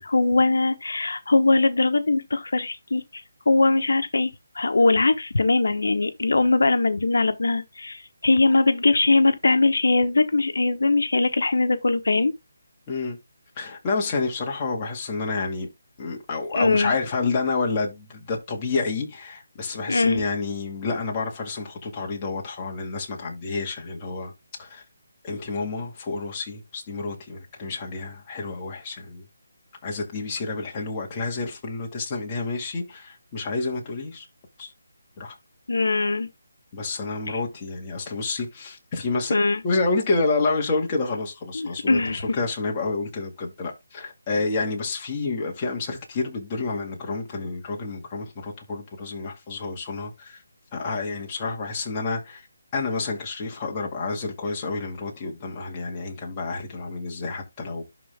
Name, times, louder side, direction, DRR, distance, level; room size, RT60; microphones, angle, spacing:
voice 1, 0.0-3.0 3.5-12.3 16.5-16.9 19.9-20.2 35.7-36.3 37.3-37.4 39.3-39.6 41.5-42.2, left 3 dB, 80° left, 1.1 m, -21 dB
voice 2, 12.9-13.2 13.6-15.7 16.0-24.3 24.6-24.8 25.2-29.2 29.8-34.3 34.6-34.7 35.2-35.3 36.7-39.4 39.6-50.4 50.7-52.5 52.7-57.8, left 3 dB, 20° left, 2.1 m, -29 dB
11.5 x 3.9 x 3.5 m
hypercardioid pair, 170°, 0 cm